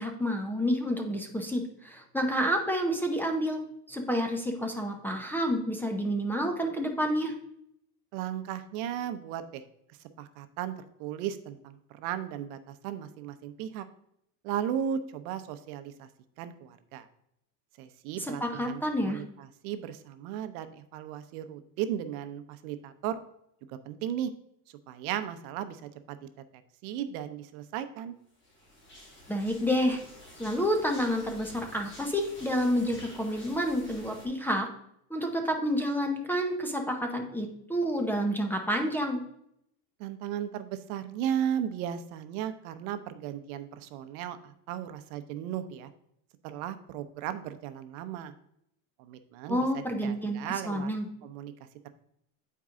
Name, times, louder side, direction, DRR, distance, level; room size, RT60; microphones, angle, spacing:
voice 1, 0.0-3.6 3.9-7.3 18.2-19.2 29.3-30.0 30.4-34.7 35.1-39.2 49.5-51.1, equal, 5° left, 3 dB, 0.7 m, -29 dB
voice 2, 8.1-9.6 10.2-13.8 14.4-16.1 16.4-17.1 17.8-23.2 23.7-24.3 24.9-26.3 26.8-28.1 40.0-45.9 46.4-48.3 49.0-50.9 51.2-51.9, right 10 dB, 70° right, 10 dB, 0.8 m, -36 dB
sound 1, 28.4-34.3, left 1 dB, 25° left, 2.2 m, -49 dB
8.4 x 4.6 x 3.7 m, 0.74 s
supercardioid pair, 135°, 44 cm